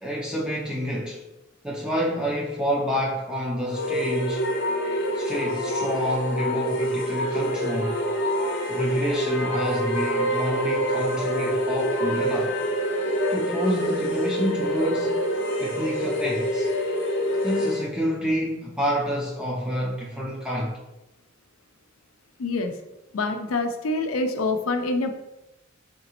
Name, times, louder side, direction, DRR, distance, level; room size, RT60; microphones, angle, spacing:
voice 1, 0.0-1.2 1.6-4.5 5.1-8.0 8.7-12.6 13.3-15.2 15.6-16.7 17.4-20.8, equal, 5° right, -3 dB, 0.4 m, -28 dB
sound 1, 3.7-17.9, equal, 55° left, 0.8 m, -26 dB
voice 2, 22.4-22.7 23.1-25.1, left 3 dB, 85° left, 6 dB, 0.5 m, -26 dB
4.0 x 3.6 x 2.9 m, 0.93 s
head